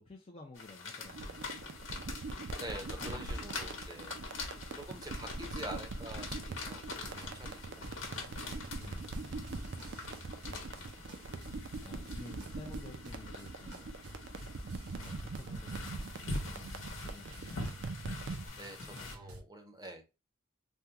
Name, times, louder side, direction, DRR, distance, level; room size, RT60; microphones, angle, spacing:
voice 1, 0.0-1.7 3.0-3.8 8.7-9.6 10.4-13.9 14.9-17.7, left 3 dB, 25° left, 0.4 m, -53 dB
sound 1, 0.5-19.2, left 3 dB, 60° left, 1.0 m, -45 dB
sound 2, 1.0-18.5, right 3 dB, 55° right, 0.5 m, -43 dB
voice 2, 2.6-7.9 18.6-20.0, right 1 dB, 20° right, 0.7 m, -47 dB
sound 3, 7.1-19.4, right 1 dB, 85° right, 0.9 m, -52 dB
3.5 x 2.2 x 2.7 m
head